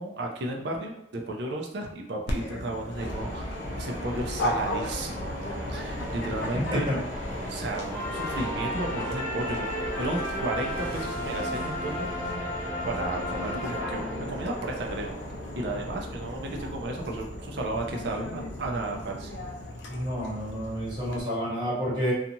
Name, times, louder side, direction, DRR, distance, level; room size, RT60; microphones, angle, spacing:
voice 1, 0.0-6.9 7.5-12.3 12.9-15.1 15.5-19.3, right 2 dB, 60° right, 1 dB, 0.5 m, -34 dB
Dog, 2.3-21.2, left 1 dB, 65° left, 0.5 m, -38 dB
sound 1, 3.0-19.7, equal, 40° left, 1.0 m, -38 dB
sound 2, 7.9-14.5, equal, 10° left, 0.8 m, -34 dB
voice 2, 19.9-22.1, equal, 25° right, -8 dB, 1.3 m, -29 dB
2.6 x 2.4 x 2.8 m, 0.79 s
head